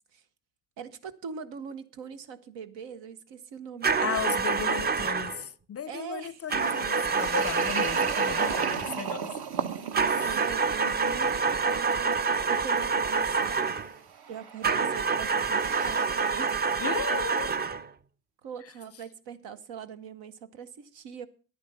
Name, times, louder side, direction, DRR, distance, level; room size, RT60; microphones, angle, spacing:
voice 1, 0.8-5.1 5.9-6.4 8.9-9.3 10.2-13.9 14.3-16.7 18.4-21.3, right 7 dB, 85° right, 1.0 m, -42 dB
sound 1, 3.8-5.4 6.5-9.0 9.9-13.9 14.6-17.9, right 5 dB, 25° right, 0.5 m, -27 dB
voice 2, 4.0-9.3 10.0-10.4 16.8-17.5, left 8 dB, 35° left, 0.4 m, -36 dB
sound 2, 6.6-16.4, right 7 dB, 60° right, 1.1 m, -39 dB
10.0 x 9.6 x 5.3 m
cardioid pair, 75°, 44 cm